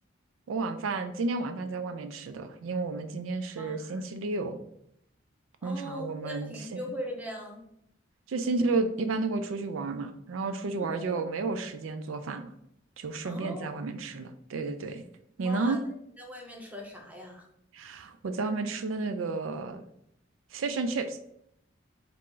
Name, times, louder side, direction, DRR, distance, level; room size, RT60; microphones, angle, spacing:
voice 1, 0.5-4.6 5.6-6.8 8.3-12.5 13.0-15.0 15.4-15.8 17.7-19.8 20.5-21.2, right 3 dB, 85° right, 9 dB, 0.4 m, -32 dB
voice 2, 3.6-4.0 5.6-7.6 10.9-11.2 13.2-13.7 15.4-15.8 16.2-17.4, equal, 10° right, 0 dB, 0.8 m, -40 dB
4.3 x 2.5 x 3.7 m, 0.74 s
head